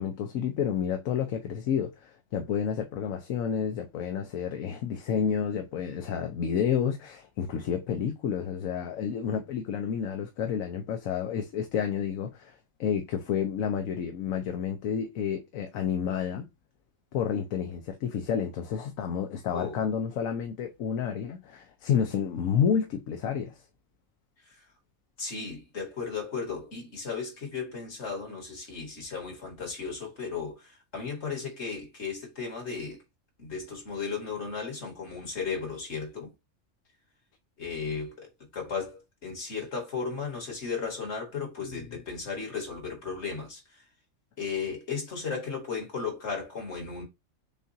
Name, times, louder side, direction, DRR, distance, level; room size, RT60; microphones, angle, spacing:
voice 1, 0.0-16.5 17.1-23.6, left 7 dB, 90° left, 1.1 m, -30 dB
voice 2, 25.2-33.0 33.4-36.3 37.6-43.8 44.4-47.0, left 5 dB, 55° left, 2.0 m, -35 dB
6.8 x 2.4 x 2.7 m
omnidirectional pair, 1.4 m